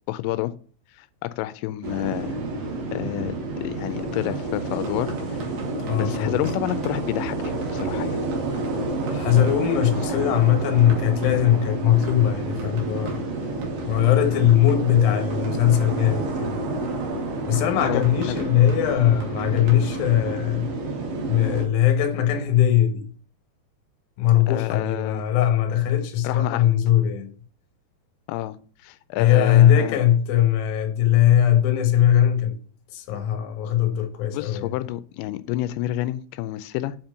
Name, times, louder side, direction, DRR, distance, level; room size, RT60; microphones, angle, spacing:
voice 1, 0.1-0.5 0.9-2.4 2.9-5.5 6.0-8.2 17.8-18.4 24.5-25.2 26.2-26.7 28.3-30.0 34.3-37.0, left 15 dB, 90° left, 2.9 m, -29 dB
sound 1, 1.8-21.7, right 2 dB, 85° right, 4.1 m, -29 dB
sound 2, 4.6-20.4, right 4 dB, 70° right, 3.8 m, -42 dB
voice 2, 5.8-6.4 9.1-13.2 13.8-16.6 17.5-20.7 21.3-23.1 24.2-27.3 29.2-32.6 32.9-34.7, left 11 dB, 65° left, 2.8 m, -20 dB
8.4 x 4.4 x 6.5 m
omnidirectional pair, 5.1 m